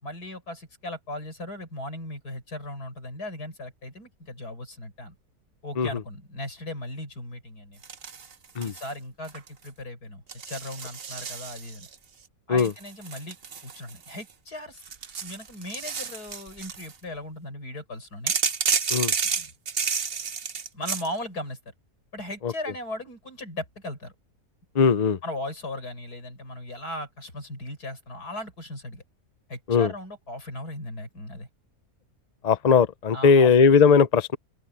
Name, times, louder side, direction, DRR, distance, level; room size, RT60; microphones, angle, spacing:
voice 1, 0.0-5.1 5.6-7.8 8.6-11.9 12.5-13.4 13.6-14.8 15.2-18.4 19.3-19.5 20.7-21.6 22.1-24.1 25.2-29.0 29.5-31.5 33.1-33.5, left 1 dB, 75° left, 6.6 m, -37 dB
sound 1, 7.8-8.9 9.2-9.7 10.3-11.9 12.6-14.3 14.8-16.9 18.3-21.1, right 6 dB, 45° right, 1.1 m, -30 dB
voice 2, 24.7-25.2 29.7-29.9 32.4-34.4, left 5 dB, 45° left, 0.5 m, -19 dB
open air
omnidirectional pair, 1.7 m